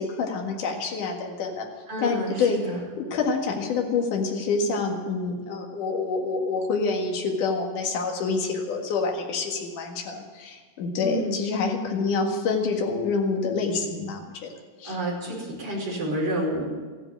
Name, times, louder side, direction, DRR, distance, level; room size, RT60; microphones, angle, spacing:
voice 1, 0.0-1.7 2.0-2.6 3.1-14.5 14.8-15.0, left 4 dB, 70° left, 1 dB, 3.3 m, -27 dB
voice 2, 1.9-2.8 11.0-11.4 14.8-16.7, right 1 dB, 30° right, -4 dB, 5.4 m, -29 dB
15.0 x 11.0 x 8.8 m, 1.4 s
omnidirectional pair, 3.9 m